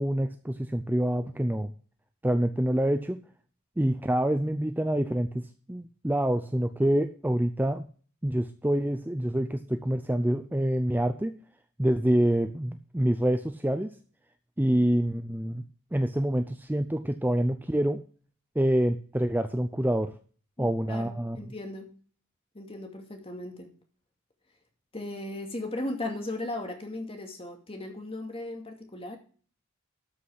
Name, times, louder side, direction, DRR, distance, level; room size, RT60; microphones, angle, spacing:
voice 1, 0.0-1.7 2.2-3.2 3.8-7.8 8.2-11.3 11.8-13.9 14.6-15.6 15.9-18.0 18.6-20.1 20.6-21.5, right 1 dB, 10° right, 8 dB, 0.5 m, -26 dB
voice 2, 20.6-21.9 22.5-23.7 24.9-29.2, left 1 dB, 25° left, 4 dB, 2.4 m, -37 dB
13.0 x 6.0 x 5.9 m, 0.42 s
head